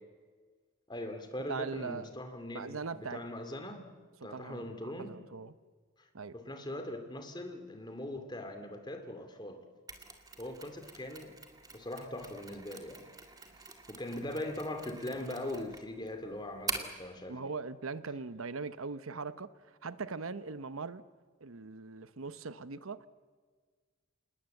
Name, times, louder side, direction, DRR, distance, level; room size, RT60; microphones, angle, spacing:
voice 1, 0.9-3.9 4.2-5.2 6.3-9.6 10.4-11.3 11.7-13.1 13.9-17.4, left 1 dB, 20° left, 2.6 m, -41 dB
voice 2, 1.5-2.1 2.5-3.2 4.2-5.5 6.1-6.4 17.3-21.0 21.4-23.1, right 4 dB, 85° right, 0.9 m, -40 dB
Mechanisms, 9.9-17.1, right 4 dB, 20° right, 2.2 m, -45 dB
27.5 x 20.0 x 7.9 m
head